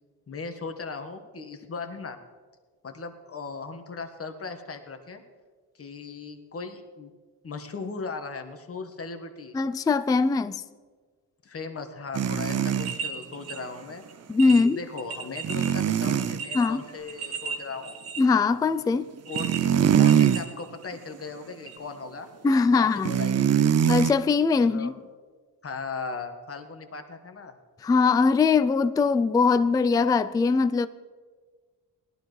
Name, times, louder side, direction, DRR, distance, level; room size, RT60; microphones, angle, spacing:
voice 1, 0.3-2.2 2.8-5.2 5.7-7.1 7.4-9.6 11.4-14.0 14.5-18.0 19.3-22.3 22.7-23.8 24.6-24.9 25.6-27.5, left 4 dB, 35° left, 1.4 m, -38 dB
voice 2, 9.5-10.6 14.3-14.8 16.5-16.8 18.2-19.1 22.4-23.1 23.8-24.9 27.8-30.9, left 4 dB, 10° left, 0.3 m, -21 dB
sound 1, 12.1-13.0 15.4-16.4 19.2-20.4 20.9-21.2 23.0-24.1, right 9 dB, 40° right, 0.6 m, -22 dB
sound 2, 12.7-13.6 14.0-14.1 14.4-15.7 16.2-18.4 19.3-21.0 21.7-21.8, right 6 dB, 70° right, 1.8 m, -36 dB
18.0 x 12.0 x 3.2 m
cardioid pair, 80°, 40 cm